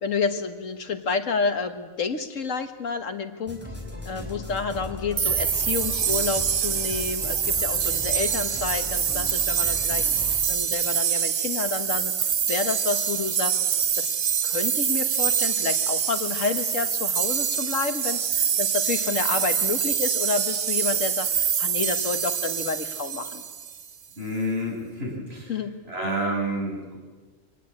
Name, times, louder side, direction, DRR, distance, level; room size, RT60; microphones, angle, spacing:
voice 1, 0.0-3.6 4.1-12.1 12.5-13.6 14.0-14.2 14.4-23.4 25.5-25.8, left 5 dB, 75° left, 8 dB, 1.8 m, -29 dB
sound 1, 3.5-10.4, left 1 dB, 10° right, 4.6 m, -37 dB
sound 2, 5.2-23.9, right 8 dB, 80° right, 1.5 m, -25 dB
voice 2, 24.2-25.5 25.9-27.0, equal, 50° right, -1 dB, 6.6 m, -29 dB
24.5 x 18.5 x 8.7 m, 1.4 s
omnidirectional pair, 1.3 m